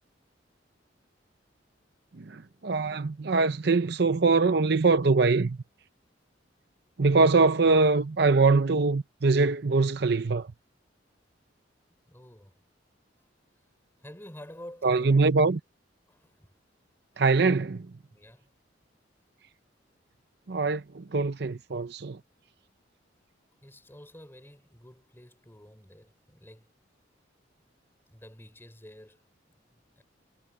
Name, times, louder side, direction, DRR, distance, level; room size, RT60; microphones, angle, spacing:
voice 1, 2.2-5.6 7.0-10.5 14.8-15.6 17.2-17.9 20.5-22.2, right 3 dB, 60° right, 0.7 m, -23 dB
voice 2, 12.0-12.5 13.2-13.3 14.0-15.3 16.1-16.5 18.1-18.5 23.6-26.7 28.1-29.2 29.7-30.0, left 1 dB, 10° left, 5.1 m, -49 dB
head